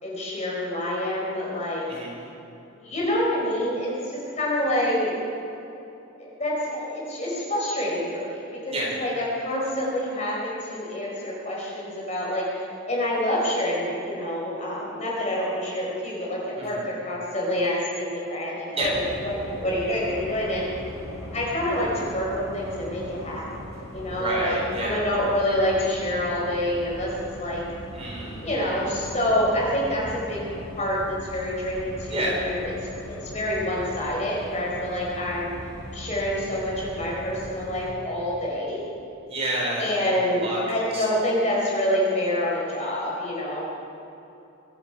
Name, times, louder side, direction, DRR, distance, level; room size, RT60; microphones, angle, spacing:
voice 1, 0.0-2.0 2.8-5.1 6.2-8.7 9.0-20.7 21.3-27.1 27.4-27.6 28.4-30.4 30.8-32.6 32.9-35.5 35.9-38.8 39.8-43.6, left 1 dB, 35° left, -4 dB, 4.5 m, -27 dB
sound 1, 18.8-37.9, equal, 70° left, 2.9 m, -39 dB
voice 2, 24.0-25.0 27.9-28.5 32.1-32.4 39.3-41.0, right 1 dB, 30° right, -4 dB, 4.0 m, -29 dB
23.0 x 13.0 x 4.9 m, 2.8 s
head